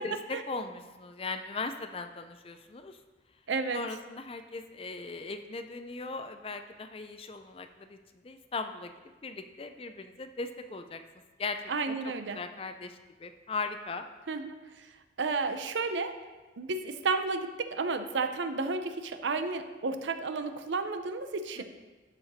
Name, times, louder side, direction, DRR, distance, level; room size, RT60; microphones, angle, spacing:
voice 1, 0.0-3.0 3.7-8.0 8.2-8.9 9.2-11.0 11.4-12.0 12.3-14.1 21.6-21.7, left 3 dB, 30° left, 8 dB, 0.4 m, -38 dB
voice 2, 3.5-3.8 11.7-12.4 14.3-14.9 15.2-16.2 16.6-21.6, right 4 dB, 80° right, 9 dB, 0.6 m, -32 dB
12.0 x 5.0 x 4.1 m, 1.3 s
head